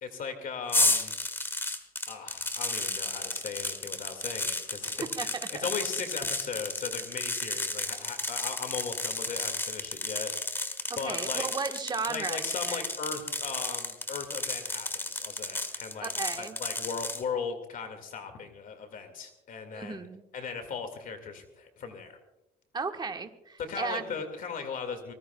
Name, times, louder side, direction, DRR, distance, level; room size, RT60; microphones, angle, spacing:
voice 1, 0.0-1.2 2.1-10.7 11.0-11.5 12.1-20.0 20.3-22.2 23.6-25.1, left 5 dB, 55° left, 7 dB, 2.0 m, -38 dB
sound 1, 0.7-17.2, left 2 dB, 15° left, 1.6 m, -33 dB
voice 2, 4.8-5.7 11.0-12.8 16.0-16.6 19.7-20.2 22.7-24.1, right 4 dB, 25° right, 6 dB, 1.3 m, -35 dB
24.0 x 19.0 x 2.3 m, 0.92 s
cardioid pair, 110°, 17 cm